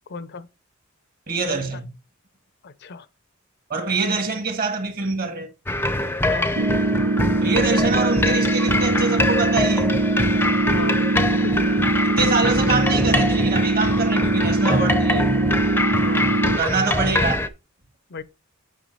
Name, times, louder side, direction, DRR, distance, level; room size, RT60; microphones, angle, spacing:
voice 1, 0.1-0.5 2.6-3.1 6.2-6.6 10.7-11.6 16.0-16.6 18.1-18.2, left 4 dB, 55° left, 0.6 m, -35 dB
voice 2, 1.3-1.9 3.7-5.5 7.3-9.9 12.0-15.3 16.5-17.5, right 3 dB, 45° right, 1.7 m, -25 dB
sound 1, 5.7-17.5, left 2 dB, 10° left, 0.6 m, -24 dB
sound 2, 6.6-16.6, right 2 dB, 85° right, 0.7 m, -22 dB
9.2 x 4.7 x 4.1 m
head